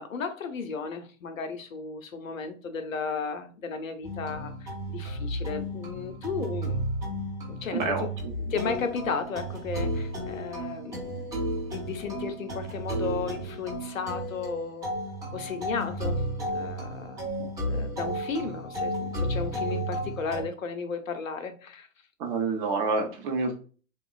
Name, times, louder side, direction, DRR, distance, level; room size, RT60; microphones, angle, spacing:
voice 1, 0.0-6.8 7.5-8.1 8.5-14.9 15.3-17.3 17.7-21.9, left 5 dB, 85° left, 8 dB, 0.6 m, -34 dB
sound 1, 4.0-20.4, right 1 dB, 10° right, 0.5 m, -33 dB
voice 2, 7.7-8.0 22.2-23.6, right 4 dB, 40° right, 2 dB, 0.7 m, -27 dB
3.0 x 2.2 x 2.3 m, 0.39 s
figure-of-eight pair, 110°, 40 cm